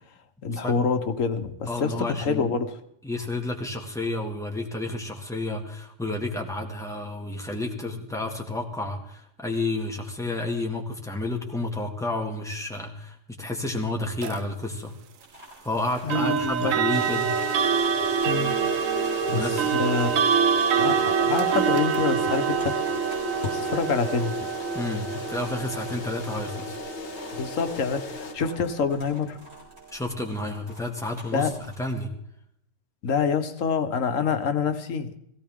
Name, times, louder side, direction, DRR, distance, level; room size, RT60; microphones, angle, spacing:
voice 1, 0.4-2.8 16.0-16.7 18.2-18.5 19.3-19.5 19.8-20.1 20.8-22.8 23.5-24.3 27.3-29.4 31.3-31.5 33.0-35.2, left 5 dB, 90° left, 7 dB, 1.4 m, -26 dB
voice 2, 1.7-2.5 3.0-14.9 15.6-17.3 19.3-19.7 24.7-26.8 29.9-31.5 31.8-32.1, left 2 dB, ahead, 1 dB, 2.0 m, -31 dB
sound 1, 14.2-14.4 16.1-28.9, right 7 dB, 90° right, 1.1 m, -26 dB
sound 2, 15.2-31.9, left 1 dB, 55° right, 6.4 m, -49 dB
sound 3, 16.9-28.3, left 6 dB, 50° left, 1.2 m, -36 dB
17.0 x 17.0 x 3.6 m, 0.75 s
omnidirectional pair, 1.3 m